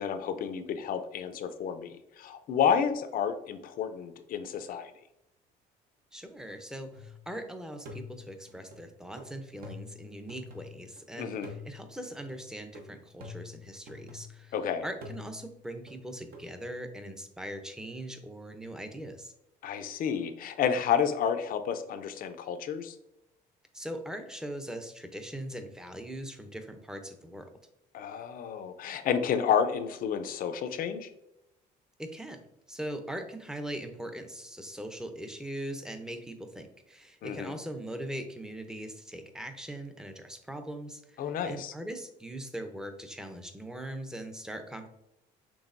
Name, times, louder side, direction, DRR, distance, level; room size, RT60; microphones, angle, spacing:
voice 1, 0.0-4.9 11.2-11.5 14.5-14.8 19.6-22.9 27.9-31.1 37.2-37.6 41.2-41.7, left 7 dB, 60° left, 9 dB, 0.5 m, -30 dB
voice 2, 6.1-14.5 14.8-19.3 23.7-27.5 32.0-32.4 32.7-44.9, right 1 dB, 5° right, 6 dB, 0.6 m, -41 dB
sound 1, 6.9-7.4 7.8-11.0 11.4-14.6 15.0-16.5, left 4 dB, 60° right, 1.0 m, -47 dB
6.2 x 3.2 x 2.6 m, 0.85 s
cardioid pair, 110°, 17 cm